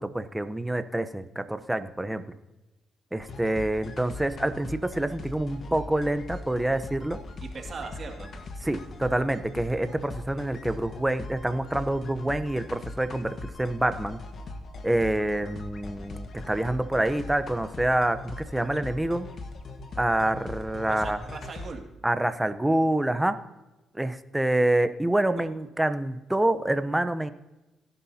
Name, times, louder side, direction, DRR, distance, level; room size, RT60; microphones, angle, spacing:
voice 1, 0.0-2.3 3.1-7.2 8.6-14.2 14.8-19.3 20.0-21.2 22.0-23.4 23.9-27.3, right 1 dB, 10° right, 11 dB, 0.8 m, -27 dB
sound 1, 3.2-21.8, left 3 dB, 55° left, 1.4 m, -40 dB
voice 2, 7.4-8.3 20.8-21.9 25.4-25.5, right 4 dB, 40° right, 2 dB, 2.2 m, -39 dB
17.5 x 11.0 x 2.8 m, 1.0 s
cardioid pair, 90°, 0 cm